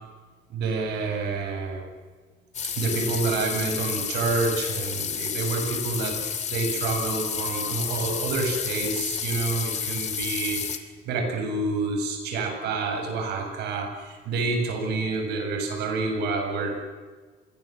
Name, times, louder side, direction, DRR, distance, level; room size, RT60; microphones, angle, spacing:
voice 1, 0.5-1.8 2.6-10.8 11.1-16.8, right 3 dB, 80° right, 4 dB, 7.5 m, -28 dB
sound 1, 2.5-10.8, left 7 dB, 45° left, 2.7 m, -30 dB
27.0 x 23.0 x 7.8 m, 1.4 s
cardioid pair, 110°, 17 cm